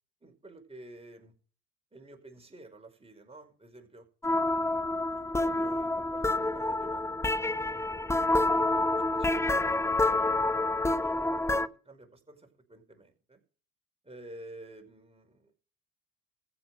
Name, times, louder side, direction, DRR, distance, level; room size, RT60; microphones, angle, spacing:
voice 1, 0.2-1.3 1.9-4.1 5.2-13.4 14.0-15.5, right 2 dB, 15° right, 3 dB, 5.3 m, -52 dB
sound 1, 4.2-11.7, left 2 dB, 5° left, 0.7 m, -28 dB
15.0 x 8.7 x 5.0 m, 0.40 s
hypercardioid pair, 65°, 41 cm